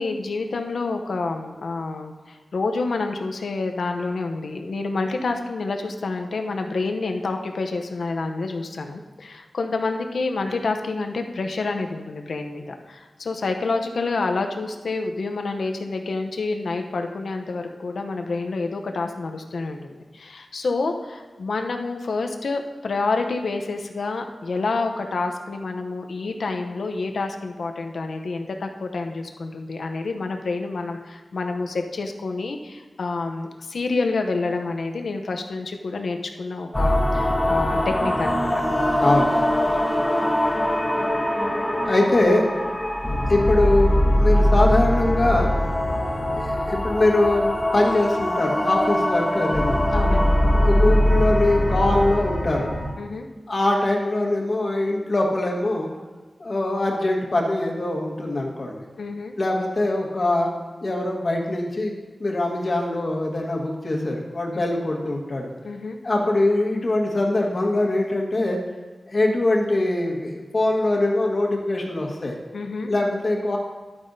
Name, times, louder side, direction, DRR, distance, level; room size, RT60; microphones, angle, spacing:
voice 1, 0.0-38.5 49.9-50.4 53.0-53.3 59.0-59.4 64.5-64.6 65.6-66.0 72.5-72.9, left 3 dB, 80° left, 4 dB, 0.7 m, -28 dB
sound 1, 36.7-52.9, left 1 dB, 20° left, 1.1 m, -22 dB
voice 2, 39.0-39.4 41.9-42.5 43.3-45.5 46.3-49.8 50.5-52.7 53.5-55.9 56.4-58.8 59.4-60.5 60.8-61.9 62.2-65.5 66.0-68.6 69.1-72.4 72.8-73.6, left 2 dB, 50° left, -1 dB, 1.5 m, -22 dB
11.5 x 8.8 x 2.7 m, 1.3 s
wide cardioid pair, 85°, 0 cm